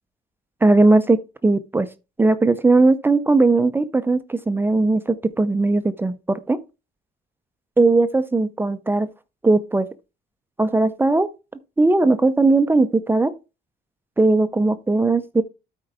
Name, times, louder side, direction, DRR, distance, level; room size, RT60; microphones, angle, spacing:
voice 1, 0.6-1.9 2.2-6.6 7.8-9.1 9.4-9.9 10.6-11.3 11.8-13.3 14.2-15.4, right 3 dB, 10° right, 0.6 m, -18 dB
12.5 x 4.5 x 3.5 m
cardioid pair, 110°, 17 cm